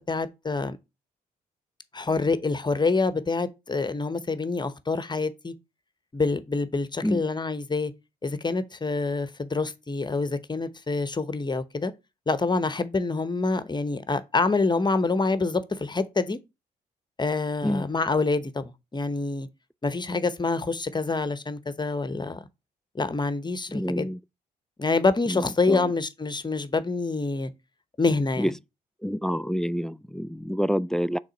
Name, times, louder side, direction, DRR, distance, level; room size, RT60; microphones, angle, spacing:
voice 1, 0.1-0.8 1.9-5.5 6.1-7.9 8.2-11.9 12.3-16.4 17.2-19.5 19.8-22.4 22.9-24.1 24.8-27.5 28.0-28.5, left 3 dB, 25° left, 0.9 m, -26 dB
voice 2, 23.7-24.2 25.3-25.9 28.4-28.5 29.0-31.2, equal, 5° left, 0.3 m, -27 dB
6.4 x 3.7 x 5.2 m
hypercardioid pair, 50°, 18 cm